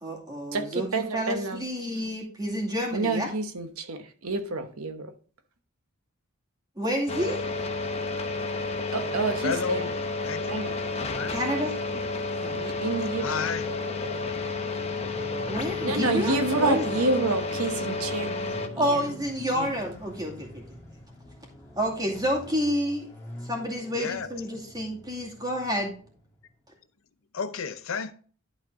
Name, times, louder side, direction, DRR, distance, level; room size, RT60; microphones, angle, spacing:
voice 1, 0.0-0.9 1.1-3.3 6.8-7.4 11.3-11.8 12.4-12.6 15.5-17.0 18.8-20.8 21.8-23.1 23.4-25.9, equal, 15° right, 2.4 m, -29 dB
voice 2, 0.5-1.7 2.9-5.1 8.9-9.9 10.5-10.7 12.5-13.5 15.8-18.4 18.7-19.0 19.5-19.7, right 3 dB, 80° right, 1.0 m, -28 dB
sound 1, 7.1-18.7, left 3 dB, 30° left, 0.9 m, -31 dB
voice 3, 9.4-10.0 10.2-10.5 11.0-11.3 13.2-13.7 24.0-24.3 27.3-28.1, left 6 dB, 65° left, 0.6 m, -32 dB
Motorcycle, 12.8-26.5, left 1 dB, 15° left, 2.1 m, -47 dB
11.5 x 4.4 x 3.8 m
head